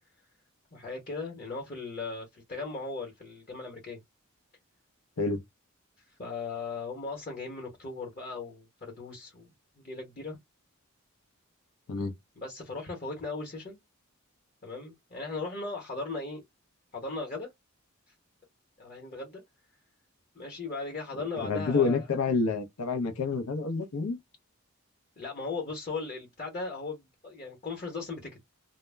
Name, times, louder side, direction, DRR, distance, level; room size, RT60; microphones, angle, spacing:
voice 1, 0.7-4.0 6.2-10.4 12.4-13.8 14.6-16.4 16.9-17.5 18.8-19.4 20.3-22.1 25.2-28.5, left 3 dB, 40° left, 0.9 m, -38 dB
voice 2, 21.4-24.2, left 4 dB, 90° left, 0.6 m, -28 dB
2.1 x 2.0 x 3.2 m
head